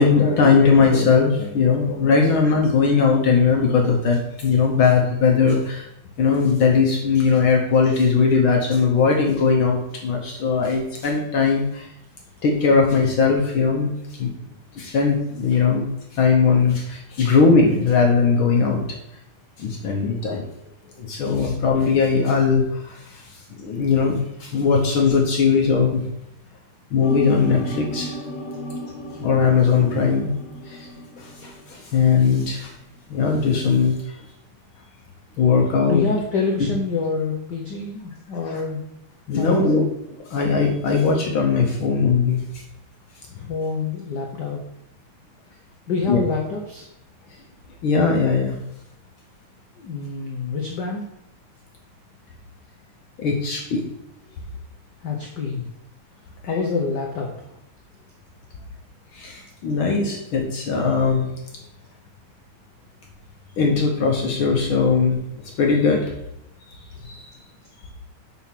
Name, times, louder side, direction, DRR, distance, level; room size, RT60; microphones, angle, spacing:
voice 1, 0.0-5.9 6.2-11.9 12.4-14.3 14.7-15.9 16.1-19.0 19.6-20.4 21.0-23.2 23.6-26.0 26.9-28.2 29.1-30.3 30.7-30.9 31.2-32.7 33.1-33.9 35.4-36.0 39.3-39.8 40.3-42.4 46.1-46.2 47.8-48.6 53.2-53.8 59.1-61.3 63.6-65.2 65.4-66.1 67.0-67.3, left 5 dB, 65° left, 1 dB, 1.4 m, -19 dB
sound 1, 27.0-32.2 32.6-33.0, left 1 dB, 45° left, 1.5 m, -34 dB
voice 2, 35.9-38.8 39.3-39.9 43.3-44.6 45.9-46.9 49.8-51.1 55.0-55.6 56.4-57.5 67.0-67.1, left 4 dB, 85° left, 0 dB, 0.9 m, -26 dB
7.8 x 4.3 x 5.8 m, 0.82 s
omnidirectional pair, 3.3 m